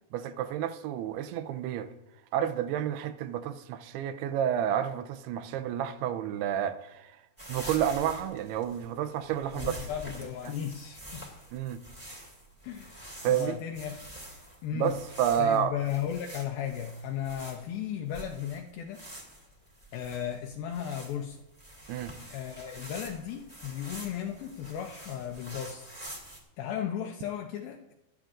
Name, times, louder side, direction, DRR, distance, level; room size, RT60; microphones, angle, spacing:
voice 1, 0.1-1.9 2.3-7.2 7.5-9.7 10.5-10.6 11.5-11.8 13.2-13.6 14.7-15.8 21.9-22.2, right 10 dB, 90° right, 2.6 m, -30 dB
sound 1, 7.4-26.4, right 1 dB, 15° right, 1.2 m, -46 dB
voice 2, 9.5-11.3 12.6-14.0 14.6-15.0 15.4-19.0 19.9-21.4 22.3-25.9 26.6-27.9, left 9 dB, 80° left, 2.3 m, -35 dB
18.5 x 12.0 x 2.5 m
omnidirectional pair, 4.6 m